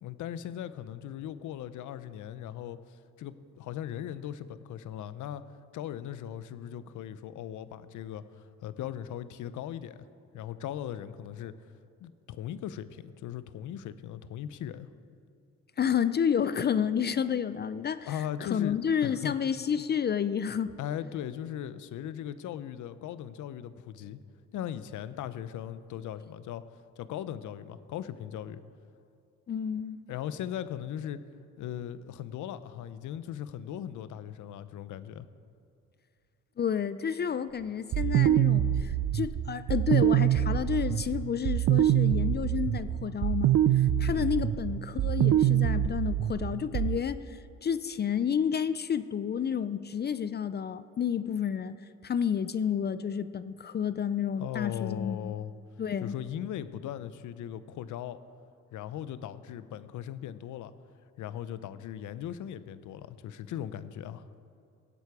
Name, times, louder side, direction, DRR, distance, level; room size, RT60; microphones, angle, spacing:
voice 1, 0.0-5.4 5.7-10.0 10.3-11.5 12.0-14.9 18.0-19.3 20.8-24.2 24.5-26.6 27.0-28.6 30.1-31.2 31.6-35.3 44.1-44.3 54.4-55.5 56.0-58.2 58.7-60.7 61.2-64.3, left 10 dB, 80° left, 14 dB, 0.7 m, -38 dB
voice 2, 15.8-20.7 29.5-30.0 36.6-51.8 52.0-55.3 55.8-56.2, left 8 dB, 35° left, 14 dB, 0.4 m, -30 dB
sound 1, 37.9-47.0, right 11 dB, 55° right, 0.5 m, -25 dB
17.5 x 8.3 x 4.8 m, 2.5 s
cardioid pair, 90°, 30 cm